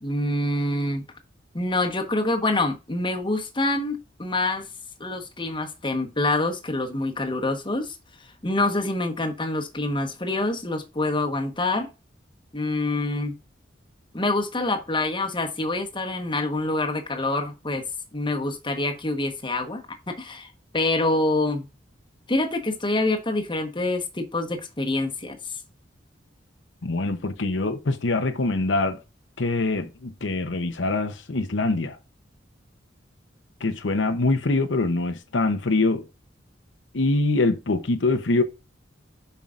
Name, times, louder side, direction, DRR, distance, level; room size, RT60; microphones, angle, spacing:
voice 1, 0.0-1.0 1.5-4.7 5.0-8.0 8.4-11.9 12.5-13.3 14.1-17.8 18.1-21.7 22.3-25.6, left 2 dB, 25° left, 1.2 m, -26 dB
voice 2, 26.8-29.0 29.4-32.0 33.6-36.1 36.9-38.4, left 2 dB, 80° left, 0.8 m, -24 dB
7.2 x 5.6 x 2.5 m
head